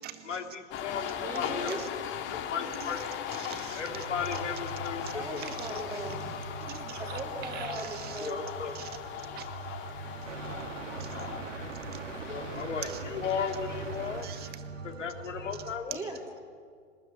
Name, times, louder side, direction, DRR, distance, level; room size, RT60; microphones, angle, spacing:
voice 1, 0.2-1.8 2.3-3.0 3.8-5.4 8.2-8.8 12.3-14.3 14.8-16.0, left 6 dB, 75° left, 5 dB, 2.6 m, -35 dB
sound 1, 0.7-14.5, left 9 dB, 30° left, 2.1 m, -39 dB
voice 2, 1.2-1.8 5.1-6.4 7.0-8.5 15.9-16.2, right 3 dB, 10° right, -1 dB, 3.7 m, -39 dB
voice 3, 3.4-3.8 5.0-5.1 5.4-5.5 6.7-7.0 7.5-8.3 8.8-8.9 9.4-9.5 10.1-10.6 11.0-12.3 12.8-13.0 14.2-14.9, right 12 dB, 25° right, 8 dB, 2.0 m, -45 dB
sound 2, 3.8-15.7, right 3 dB, 80° right, 3.3 m, -41 dB
23.0 x 20.0 x 9.4 m, 2.1 s
hypercardioid pair, 120°, 37 cm